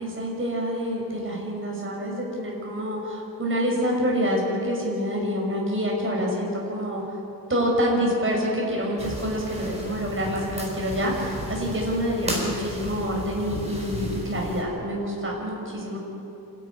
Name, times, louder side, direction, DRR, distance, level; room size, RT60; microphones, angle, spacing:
voice 1, 0.0-7.0 7.5-16.0, equal, 35° right, -2 dB, 6.2 m, -27 dB
sound 1, 9.0-14.6, equal, 15° right, 4.8 m, -34 dB
27.0 x 13.0 x 9.9 m, 2.8 s
wide cardioid pair, 160°, 37 cm